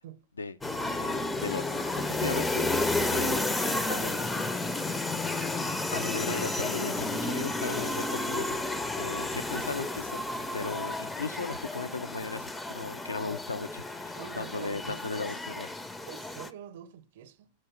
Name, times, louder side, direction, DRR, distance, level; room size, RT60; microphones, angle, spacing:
sound 1, 0.6-16.5, left 2 dB, 10° left, 0.4 m, -32 dB
voice 1, 1.0-2.7 3.1-3.5 3.9-4.3 5.9-8.6 8.9-10.2 10.5-15.7, left 4 dB, 75° left, 0.4 m, -37 dB
voice 2, 14.2-15.4 16.0-17.5, right 10 dB, 55° right, 0.6 m, -46 dB
7.3 x 2.8 x 4.8 m
figure-of-eight pair, 90°, 0 cm